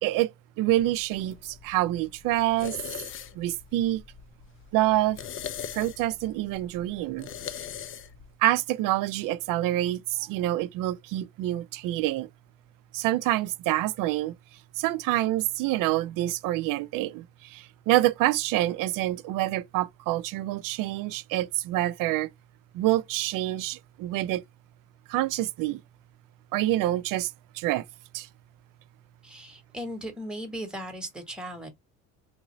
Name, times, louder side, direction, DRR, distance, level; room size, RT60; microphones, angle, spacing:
voice 1, 0.0-2.8 3.3-4.0 4.7-5.2 5.7-7.3 8.4-12.3 12.9-14.3 14.8-22.3 22.7-24.4 25.1-25.8 26.5-27.8 28.1-28.3, right 15 dB, 60° right, 0.5 m, -27 dB
sound 1, 0.7-8.3, left 9 dB, 35° left, 0.4 m, -41 dB
voice 2, 29.2-31.7, equal, ahead, 1.1 m, -37 dB
3.6 x 2.6 x 3.0 m
cardioid pair, 110°, 36 cm